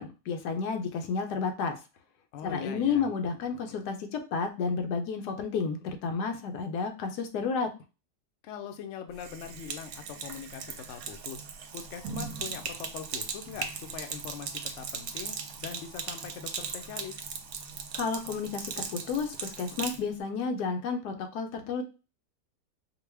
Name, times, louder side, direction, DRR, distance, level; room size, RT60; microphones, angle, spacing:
voice 1, 0.0-1.8 2.4-7.7 17.9-21.8, left 5 dB, 90° left, 5 dB, 1.3 m, -31 dB
voice 2, 2.3-3.1 8.4-11.5 11.7-17.2, left 8 dB, 65° left, 6 dB, 0.8 m, -42 dB
Sink (filling or washing), 9.1-20.0, right 6 dB, 70° right, 1.0 m, -38 dB
4.5 x 2.2 x 3.3 m, 0.31 s
omnidirectional pair, 1.7 m